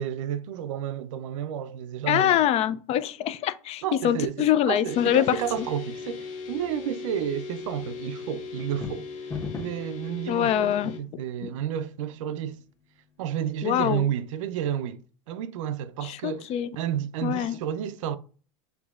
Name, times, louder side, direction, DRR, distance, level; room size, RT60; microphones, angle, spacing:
voice 1, 0.0-2.3 3.8-9.1 9.6-12.6 13.2-18.2, right 10 dB, 70° right, 0.5 m, -31 dB
voice 2, 2.1-5.3 5.6-5.7 10.3-11.2 13.6-14.0 16.0-16.7 17.2-17.6, left 11 dB, 40° left, 0.4 m, -24 dB
sound 1, 4.8-11.0, left 5 dB, 75° left, 1.0 m, -38 dB
sound 2, 8.6-9.9, left 4 dB, 15° left, 0.9 m, -35 dB
6.0 x 2.7 x 2.4 m
hypercardioid pair, 95°, 17 cm